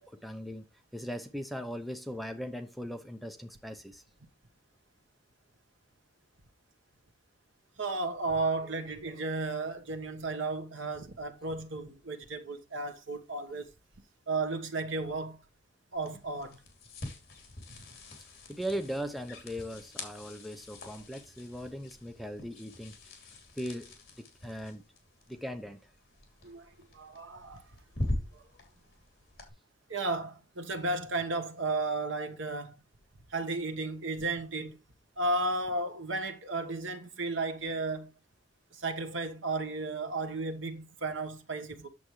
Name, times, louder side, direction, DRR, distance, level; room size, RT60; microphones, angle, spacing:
voice 1, 0.0-4.0 18.5-23.3 23.5-24.8 25.3-25.9, equal, ahead, 0.6 m, -39 dB
voice 2, 7.8-13.7 14.3-15.4 15.9-16.6 17.7-17.8 26.4-27.7 28.3-28.4 29.9-32.8 33.3-34.8 35.2-38.1 38.7-41.9, right 3 dB, 80° right, 1.2 m, -34 dB
sound 1, 15.9-29.5, left 1 dB, 55° left, 2.9 m, -43 dB
8.6 x 7.0 x 3.1 m
head